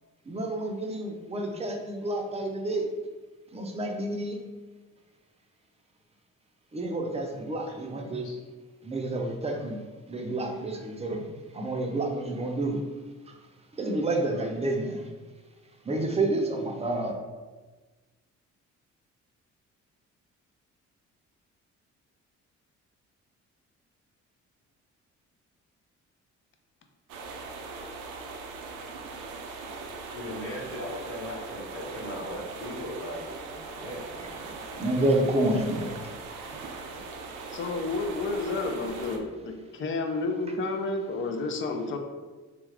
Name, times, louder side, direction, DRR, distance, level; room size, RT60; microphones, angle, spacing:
voice 1, 0.3-2.9 3.5-4.4 6.7-8.3 8.8-9.8 10.1-11.2 11.5-12.8 13.3-13.4 13.7-15.0 15.9-17.2 34.1-34.3 34.7-36.0, right 2 dB, 20° right, 2 dB, 0.5 m, -29 dB
sound 1, 27.1-39.2, right 4 dB, 90° right, 0.5 m, -40 dB
voice 2, 30.1-34.1, left 1 dB, 75° left, -5 dB, 1.1 m, -38 dB
voice 3, 37.5-42.0, left 3 dB, 40° left, 4 dB, 0.5 m, -30 dB
3.5 x 2.4 x 3.2 m, 1.3 s
cardioid pair, 90°, 30 cm